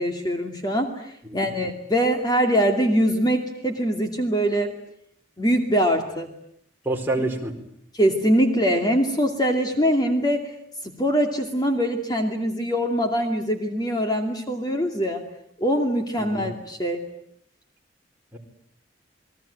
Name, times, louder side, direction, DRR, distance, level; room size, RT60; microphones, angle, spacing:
voice 1, 0.0-4.7 5.4-6.3 7.9-10.5 11.0-15.2 15.6-17.1, equal, 20° left, 4 dB, 2.5 m, -23 dB
voice 2, 6.8-7.6 16.2-16.5 18.3-18.4, right 2 dB, 10° right, 0 dB, 4.4 m, -28 dB
29.5 x 22.0 x 9.1 m, 0.71 s
head